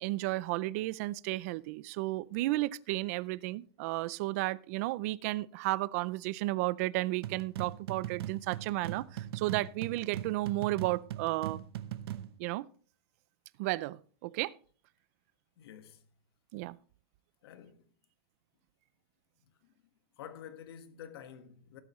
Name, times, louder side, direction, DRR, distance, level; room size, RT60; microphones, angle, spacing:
voice 1, 0.0-11.6 12.4-12.6 13.6-14.5 16.5-16.8, right 18 dB, 35° right, 0.4 m, -33 dB
sound 1, 7.2-12.3, right 12 dB, 65° right, 0.9 m, -40 dB
voice 2, 15.6-16.0 17.4-17.9 19.5-19.7 20.2-21.8, left 9 dB, 60° left, 1.5 m, -49 dB
18.5 x 8.6 x 3.1 m
supercardioid pair, 175°, 14 cm